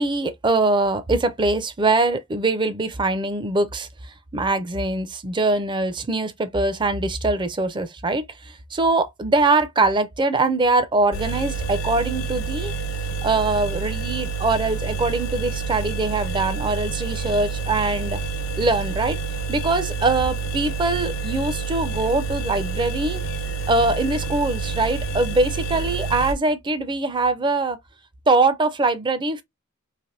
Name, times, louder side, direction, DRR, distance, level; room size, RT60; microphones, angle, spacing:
voice 1, 0.0-3.9 4.3-8.2 8.7-12.7 13.2-18.2 18.6-19.2 19.5-23.2 23.7-27.8 28.3-29.4, right 2 dB, 20° right, 0.4 m, -22 dB
sound 1, 11.1-26.3, right 5 dB, 85° left, 1.0 m, -28 dB
3.3 x 2.5 x 2.5 m
head